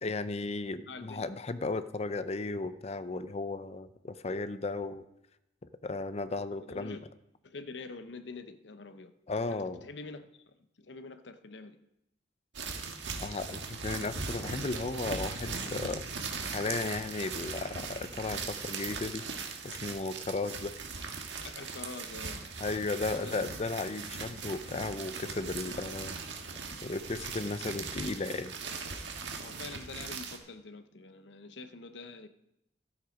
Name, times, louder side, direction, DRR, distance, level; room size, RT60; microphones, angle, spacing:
voice 1, 0.0-5.0 5.8-7.0 9.3-9.8 13.2-16.3 16.5-19.3 19.6-20.8 22.6-26.2 26.8-28.5, left 3 dB, 35° left, 0.5 m, -35 dB
voice 2, 0.9-1.3 6.7-7.0 7.4-9.1 9.5-11.8 21.4-22.5 23.0-23.3 29.4-32.3, left 3 dB, 80° left, 0.8 m, -46 dB
sound 1, 12.5-30.4, right 4 dB, 90° right, 1.5 m, -39 dB
13.0 x 8.3 x 5.2 m
head